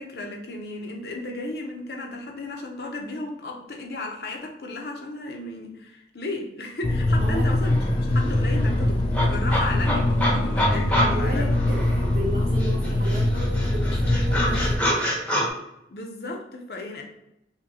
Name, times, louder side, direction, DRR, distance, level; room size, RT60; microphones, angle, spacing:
voice 1, 0.0-11.6 15.9-17.0, left 2 dB, 60° left, 2 dB, 0.7 m, -34 dB
sound 1, 6.8-14.8, left 1 dB, 30° left, 0.4 m, -23 dB
sound 2, 7.3-7.4 7.6-12.3 12.6-15.5, equal, 5° left, 0.7 m, -28 dB
voice 2, 11.0-15.1, right 1 dB, 60° right, -4 dB, 0.8 m, -33 dB
5.0 x 2.2 x 2.8 m, 0.83 s
head